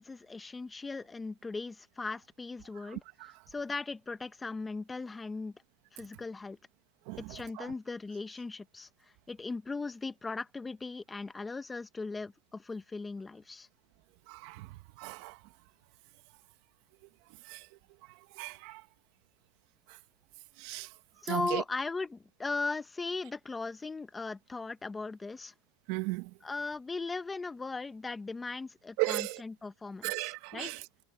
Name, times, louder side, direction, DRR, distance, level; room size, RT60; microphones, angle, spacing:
voice 1, 0.0-5.5 5.9-6.6 7.3-8.9 9.3-13.7 21.2-25.5 26.4-30.7, left 3 dB, 10° left, 1.2 m, -38 dB
voice 2, 14.3-14.7 15.0-15.4 17.5-17.6 18.4-18.8 20.6-20.9 21.3-21.6 25.9-26.3 29.0-29.4 30.0-30.8, right 23 dB, 60° right, 1.6 m, -35 dB
supercardioid pair, 130°, 0 cm